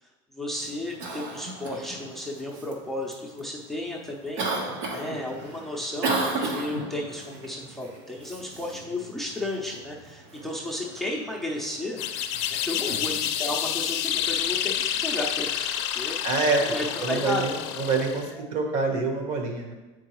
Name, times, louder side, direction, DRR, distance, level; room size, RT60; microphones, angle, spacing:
voice 1, 0.3-12.0 12.5-16.2 16.7-17.4 18.4-18.5, left 1 dB, ahead, -2 dB, 0.7 m, -33 dB
Cough, 0.5-15.0, right 3 dB, 75° right, 1.2 m, -36 dB
sound 1, 12.0-18.3, left 10 dB, 70° left, 0.5 m, -29 dB
voice 2, 12.9-13.2 16.2-16.7 17.0-19.7, right 3 dB, 50° right, 3 dB, 1.3 m, -26 dB
7.5 x 4.6 x 3.1 m, 1.2 s
supercardioid pair, 135°, 15 cm